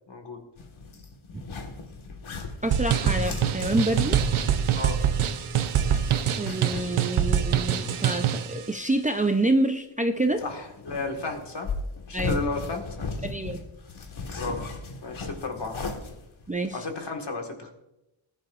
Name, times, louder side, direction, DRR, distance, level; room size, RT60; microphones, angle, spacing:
voice 1, 0.1-0.4 4.8-5.0 10.4-11.7 12.1-13.1 14.4-14.7 15.0-15.8 16.7-17.7, left 3 dB, 60° left, 3 dB, 1.9 m, -33 dB
sound 1, 0.6-7.0 7.2-7.3 10.3-16.8, left 3 dB, 75° left, 1.7 m, -36 dB
voice 2, 2.6-4.2 6.4-10.4 12.1-12.4 13.2-13.6 16.5-16.8, right 1 dB, 15° right, 5 dB, 0.6 m, -27 dB
sound 2, 2.7-8.5, right 9 dB, 80° right, 0.8 m, -25 dB
19.5 x 10.5 x 2.5 m, 0.92 s
wide cardioid pair, 135°, 48 cm